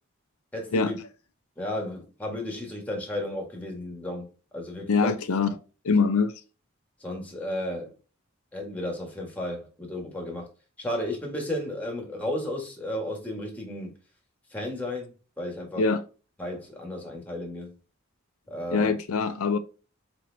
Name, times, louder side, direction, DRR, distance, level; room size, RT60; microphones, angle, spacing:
voice 1, 0.5-1.0 1.6-4.3 4.5-5.1 7.0-7.9 8.5-10.5 10.8-13.9 14.5-15.8 16.4-17.8 18.5-19.0, left 1 dB, 5° left, 1.6 m, -33 dB
voice 2, 4.9-5.5 5.8-6.3 15.8-16.0 18.7-19.6, left 4 dB, 80° left, 0.5 m, -23 dB
4.5 x 4.2 x 2.7 m
head